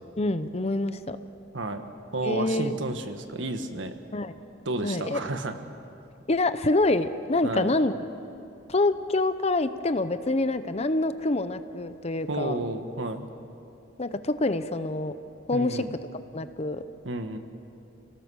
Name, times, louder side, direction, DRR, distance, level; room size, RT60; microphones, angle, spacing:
voice 1, 0.2-1.2 2.2-2.8 4.1-4.3 4.8-5.2 6.3-7.9 8.7-12.6 14.0-15.1 15.5-15.8 16.3-16.8, left 2 dB, 35° left, 11 dB, 0.8 m, -26 dB
voice 2, 2.1-3.9 4.6-5.5 7.4-7.8 12.3-13.3 15.5-15.9 17.0-17.4, right 2 dB, 75° right, 7 dB, 1.5 m, -31 dB
29.0 x 18.0 x 6.4 m, 2.7 s
head